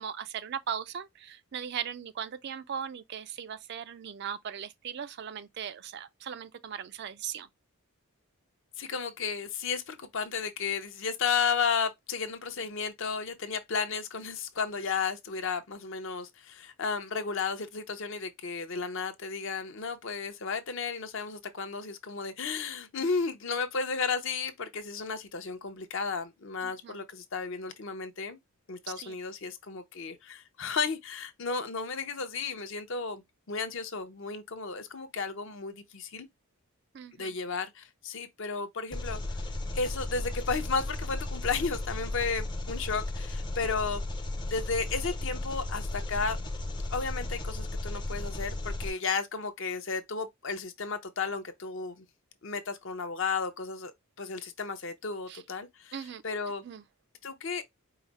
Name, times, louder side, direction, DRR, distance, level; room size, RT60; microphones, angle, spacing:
voice 1, 0.0-7.5 26.6-27.0 29.0-29.2 36.9-37.3 55.3-55.4 55.9-56.2 56.6-56.8, right 8 dB, 50° right, 0.3 m, -38 dB
voice 2, 8.8-28.4 28.7-33.2 33.5-36.3 37.2-39.2 39.7-44.0 44.5-46.4 46.9-52.0 52.4-53.9 54.2-56.6 57.2-57.6, left 5 dB, 55° left, 0.7 m, -33 dB
Engine, 38.9-48.9, left 2 dB, 20° left, 0.5 m, -35 dB
4.8 x 2.0 x 4.0 m
head